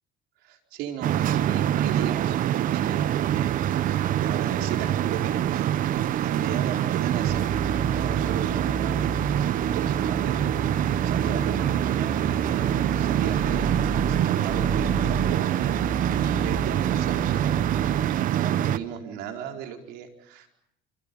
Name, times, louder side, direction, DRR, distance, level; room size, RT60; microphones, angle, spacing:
voice 1, 0.4-13.8 14.1-15.8 16.2-20.5, right 8 dB, 85° right, 4 dB, 4.6 m, -36 dB
sound 1, 1.0-18.8, right 11 dB, 55° right, 1.1 m, -25 dB
sound 2, 7.3-14.2 14.5-15.3 15.6-18.0, right 1 dB, 5° right, 1.6 m, -34 dB
29.0 x 26.0 x 5.5 m, 0.76 s
cardioid pair, 125°, 16 cm